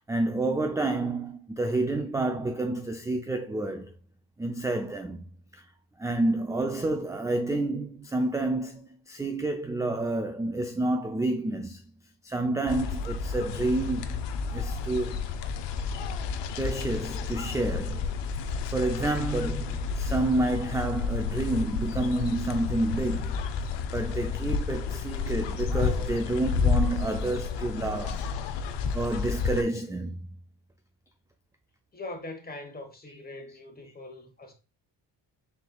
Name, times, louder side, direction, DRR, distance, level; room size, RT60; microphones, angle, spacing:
voice 1, 0.1-3.9 4.4-5.3 5.5-5.6 6.0-11.8 12.2-14.2 14.5-15.2 16.6-18.1 18.7-23.4 23.9-28.3 28.9-30.2 33.1-33.2, right 2 dB, 10° right, 0.3 m, -29 dB
sound 1, 12.7-29.6, left 5 dB, 70° left, 0.7 m, -31 dB
voice 2, 31.9-34.5, left 2 dB, 20° left, 1.2 m, -41 dB
4.5 x 3.9 x 2.3 m
cardioid pair, 75°, 44 cm